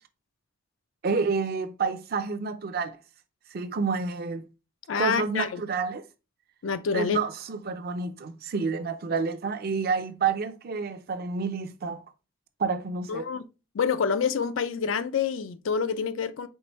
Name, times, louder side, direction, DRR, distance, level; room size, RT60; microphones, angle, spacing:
voice 1, 1.0-3.0 3.5-4.4 4.9-6.0 6.9-12.0 12.6-13.3, right 5 dB, 50° right, 0.5 m, -29 dB
voice 2, 4.9-5.6 6.6-7.2 13.1-13.4 13.7-16.5, left 6 dB, 90° left, 0.4 m, -27 dB
4.5 x 3.4 x 3.0 m
head